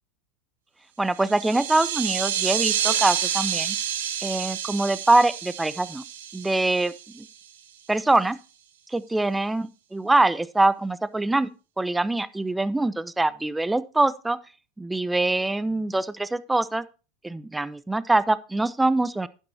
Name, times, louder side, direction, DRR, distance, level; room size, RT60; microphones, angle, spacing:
voice 1, 1.0-3.8 4.2-6.0 6.3-7.3 7.9-8.4 8.9-11.5 11.8-14.4 14.8-16.8 17.2-19.3, right 2 dB, 10° right, 0.6 m, -24 dB
sound 1, 1.2-7.2, right 9 dB, 75° right, 1.4 m, -29 dB
11.5 x 9.9 x 2.7 m
hypercardioid pair, 90°, 0 cm